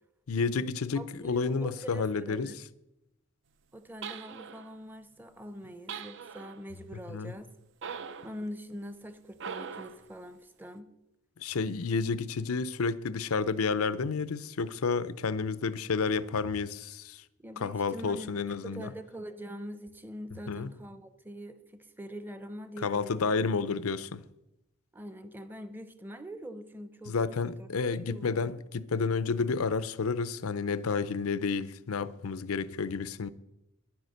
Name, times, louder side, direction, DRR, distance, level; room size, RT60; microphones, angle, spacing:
voice 1, 0.3-2.6 7.1-7.3 11.4-17.2 17.6-18.9 20.5-20.7 22.8-24.2 27.1-33.3, left 4 dB, 85° left, 0.6 m, -30 dB
voice 2, 1.0-2.6 3.7-7.5 8.2-10.9 17.4-23.3 24.9-27.2 27.4-28.6, equal, 10° right, 0.7 m, -44 dB
sound 1, 4.0-4.8 5.9-6.6 7.8-8.4 9.4-10.1, right 6 dB, 55° right, 0.6 m, -41 dB
10.5 x 9.4 x 6.5 m
head